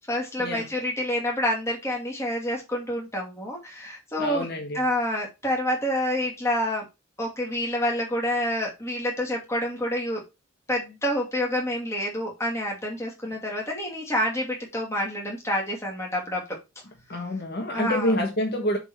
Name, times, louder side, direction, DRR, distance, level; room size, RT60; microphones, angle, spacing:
voice 1, 0.1-4.5 4.7-6.8 7.2-10.2 10.7-16.6 17.7-18.1, equal, 15° left, 2.5 m, -28 dB
voice 2, 4.2-4.8 17.1-18.8, left 1 dB, 50° left, 1.5 m, -27 dB
7.4 x 4.1 x 4.6 m
head